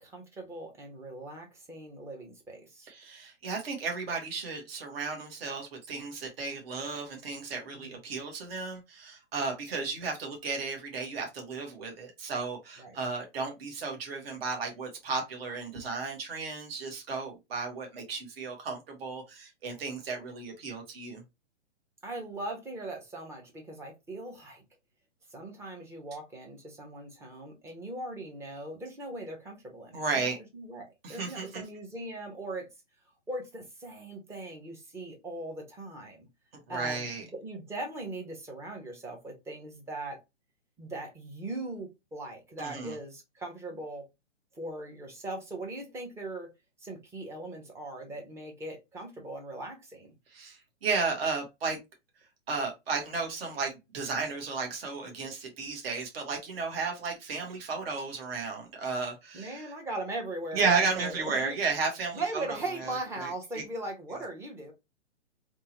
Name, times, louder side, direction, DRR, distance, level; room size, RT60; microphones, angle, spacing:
voice 1, 0.0-2.9 7.7-8.0 12.8-13.0 22.0-24.6 25.3-32.7 33.3-36.3 36.7-37.1 37.4-40.2 40.8-44.0 44.5-46.5 46.8-50.1 59.3-61.5 62.1-64.7, right 2 dB, 5° right, 0.7 m, -39 dB
voice 2, 2.9-21.2 29.9-30.4 31.0-31.6 36.7-37.2 42.6-42.9 50.3-51.8 52.5-59.7 60.5-62.9 63.2-63.6, right 4 dB, 55° right, 1.7 m, -34 dB
3.6 x 3.0 x 2.9 m
hypercardioid pair, 130°, 36 cm